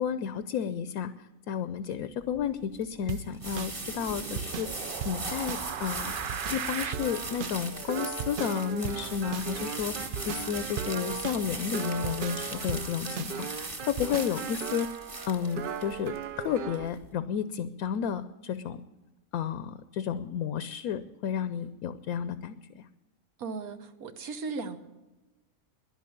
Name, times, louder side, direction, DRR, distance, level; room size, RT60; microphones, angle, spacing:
voice 1, 0.0-6.2 6.5-13.5 13.8-14.9 15.3-18.8 19.3-22.8, left 8 dB, 80° left, 12 dB, 1.1 m, -32 dB
sound 1, 2.2-17.1, right 2 dB, 25° right, 1.3 m, -40 dB
sound 2, 3.1-16.9, right 8 dB, 65° right, 0.5 m, -37 dB
voice 2, 23.4-24.8, right 4 dB, 80° right, 8 dB, 1.5 m, -36 dB
11.5 x 11.0 x 8.6 m, 1.1 s
omnidirectional pair, 1.5 m